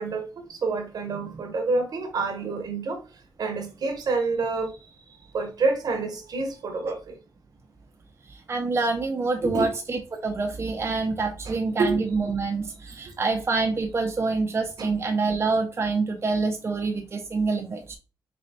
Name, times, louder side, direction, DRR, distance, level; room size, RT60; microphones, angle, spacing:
voice 1, 0.0-3.0 3.4-4.7 5.3-7.1 9.4-9.7 11.5-12.0 14.8-14.9, right 3 dB, 65° right, 0.9 m, -28 dB
voice 2, 8.3-18.0, right 3 dB, 35° right, 0.6 m, -26 dB
4.4 x 3.0 x 2.7 m
cardioid pair, 90°, 7 cm